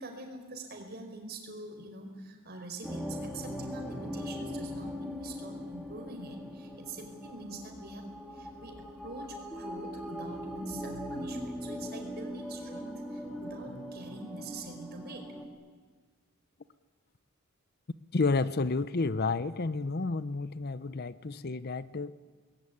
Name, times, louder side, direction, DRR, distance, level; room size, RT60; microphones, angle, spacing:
voice 1, 0.0-15.3, right 2 dB, 50° right, 4 dB, 4.7 m, -45 dB
sound 1, 2.8-15.5, equal, ahead, 2.7 m, -40 dB
voice 2, 18.1-22.1, left 3 dB, 50° left, 15 dB, 0.7 m, -30 dB
26.0 x 20.5 x 9.8 m, 1.5 s
head